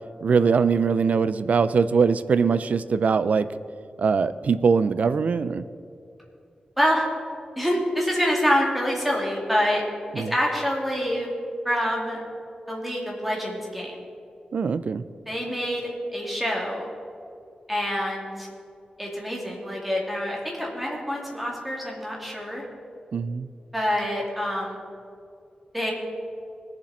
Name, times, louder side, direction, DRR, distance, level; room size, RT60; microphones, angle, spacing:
voice 1, 0.2-3.5 4.0-5.6 10.1-10.3 14.5-15.0 23.1-23.5, right 5 dB, 70° right, 14 dB, 0.5 m, -22 dB
voice 2, 7.6-9.8 10.1-11.3 11.6-12.2 12.7-13.9 15.3-16.9 17.7-18.5 19.0-22.6 23.7-24.8 25.7-25.9, equal, 5° right, -2 dB, 2.8 m, -26 dB
20.5 x 7.4 x 4.3 m, 2.6 s
wide cardioid pair, 115°, 3 cm